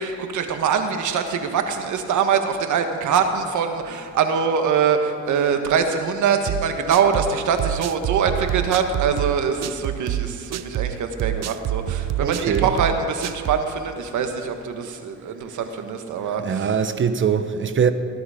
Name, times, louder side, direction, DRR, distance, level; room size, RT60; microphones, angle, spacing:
voice 1, 0.0-16.7, right 6 dB, 75° right, 1.5 m, -23 dB
sound 1, 6.5-13.7, right 13 dB, 60° right, 0.6 m, -27 dB
voice 2, 12.2-12.7 16.4-17.9, right 7 dB, 40° right, 1.0 m, -22 dB
19.0 x 11.0 x 5.0 m
cardioid pair, 90°, 30 cm